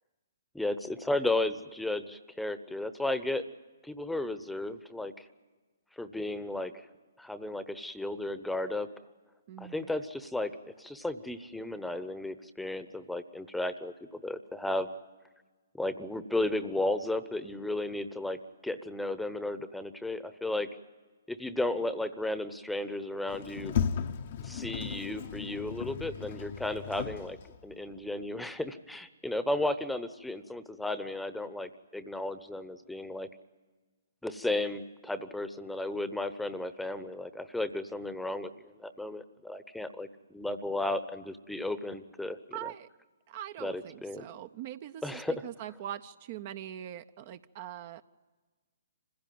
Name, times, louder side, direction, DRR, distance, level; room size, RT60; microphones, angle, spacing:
voice 1, 0.5-3.4 3.8-5.3 6.0-6.9 7.2-8.9 9.6-14.9 15.7-20.7 21.3-23.7 24.4-33.3 34.2-42.7 43.6-44.3 45.0-45.4, left 2 dB, 5° left, 12 dB, 0.9 m, -34 dB
voice 2, 9.5-9.9 42.5-42.9 43.3-48.0, right 11 dB, 40° right, 11 dB, 0.6 m, -42 dB
Sliding door, 23.3-27.7, left 8 dB, 50° left, 0.8 m, -35 dB
26.5 x 16.0 x 9.3 m, 1.3 s
figure-of-eight pair, 130°, 0 cm